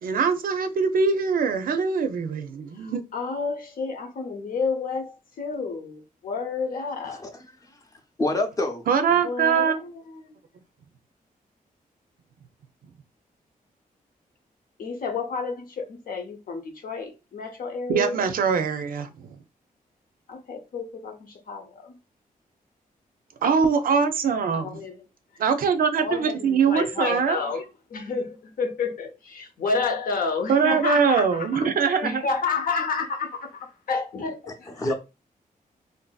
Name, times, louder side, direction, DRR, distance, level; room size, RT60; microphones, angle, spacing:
voice 1, 0.0-3.0 8.9-9.7 17.9-19.3 23.4-24.8 25.4-27.4 30.5-32.2, right 6 dB, 70° right, 0.5 m, -22 dB
voice 2, 2.7-7.3 9.1-10.4 14.8-18.3 20.3-21.9 24.5-25.1 26.0-34.9, left 4 dB, 70° left, 0.7 m, -30 dB
voice 3, 8.2-8.8 34.8-34.9, left 1 dB, 20° left, 0.6 m, -24 dB
3.7 x 2.6 x 2.3 m
wide cardioid pair, 180°, 15 cm